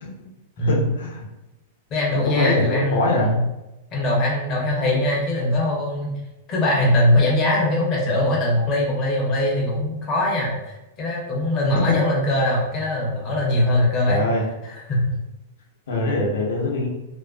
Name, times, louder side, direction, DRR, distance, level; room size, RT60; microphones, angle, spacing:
voice 1, 0.6-1.3 2.3-3.3 14.0-14.4 15.9-16.9, left 2 dB, 85° left, -1 dB, 0.7 m, -23 dB
voice 2, 1.9-3.4 3.9-6.2 6.5-14.2 14.7-15.2, left 1 dB, 20° left, -3 dB, 0.4 m, -21 dB
2.5 x 2.2 x 2.3 m, 0.97 s
supercardioid pair, 175°, 0 cm